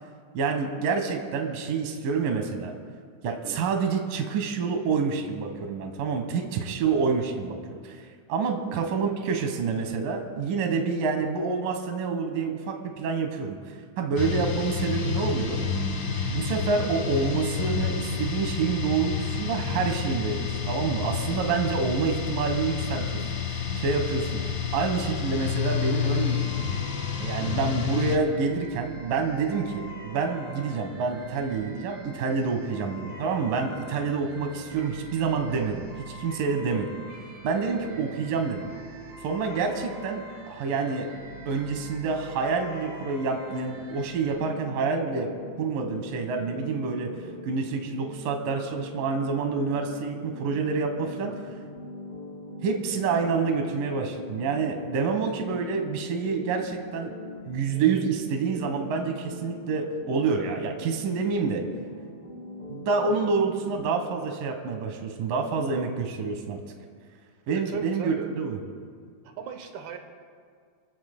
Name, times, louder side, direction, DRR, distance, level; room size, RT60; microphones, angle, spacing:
voice 1, 0.3-2.7 3.2-7.6 7.8-8.0 8.3-13.6 14.0-15.6 16.3-23.2 23.5-24.4 24.7-26.5 27.2-35.9 36.2-36.9 37.4-38.7 39.2-41.1 41.5-45.3 45.6-47.1 47.4-51.3 52.6-57.1 57.5-61.6 62.7-66.6 67.5-68.6, right 5 dB, 70° right, 4 dB, 2.8 m, -27 dB
voice 2, 3.3-3.6 8.7-8.8 27.4-27.7 67.5-68.3 69.2-70.0, right 7 dB, 85° right, 5 dB, 3.0 m, -37 dB
sound 1, 14.2-28.2, left 6 dB, 75° left, 1.0 m, -29 dB
sound 2, 25.6-44.3, right 2 dB, 50° right, 4.1 m, -44 dB
sound 3, 44.3-63.8, left 2 dB, 20° left, 4.3 m, -42 dB
28.0 x 15.5 x 2.2 m, 2.1 s
omnidirectional pair, 4.4 m